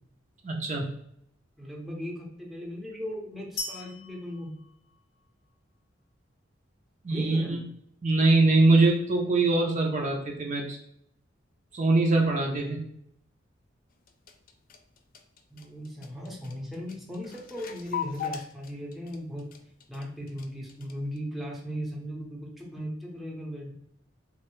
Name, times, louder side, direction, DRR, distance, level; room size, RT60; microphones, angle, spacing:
voice 1, 0.4-0.9 7.0-7.6 8.0-10.8 11.7-12.8, right 2 dB, 40° right, 0 dB, 0.4 m, -23 dB
voice 2, 1.6-4.5 7.1-7.6 15.5-19.4 19.9-23.7, equal, ahead, -2 dB, 0.7 m, -37 dB
sound 1, 3.6-5.5, left 3 dB, 75° left, 0.7 m, -40 dB
sound 2, 13.9-21.2, left 8 dB, 50° left, 0.3 m, -40 dB
3.1 x 2.5 x 3.0 m, 0.71 s
head